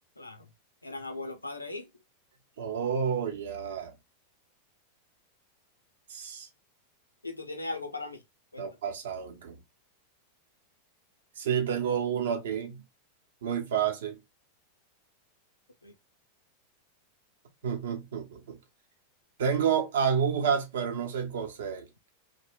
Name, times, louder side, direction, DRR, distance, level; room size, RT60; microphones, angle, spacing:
voice 1, 0.2-0.5 0.8-1.9 7.2-8.2 8.5-8.7 15.8-16.0, left 2 dB, 85° left, 0.6 m, -38 dB
voice 2, 2.6-3.9 6.1-6.5 8.6-9.6 11.4-12.8 13.4-14.2 17.6-18.6 19.4-21.8, right 7 dB, 60° right, 0.7 m, -29 dB
2.6 x 2.1 x 3.2 m
figure-of-eight pair, 90°, 0 cm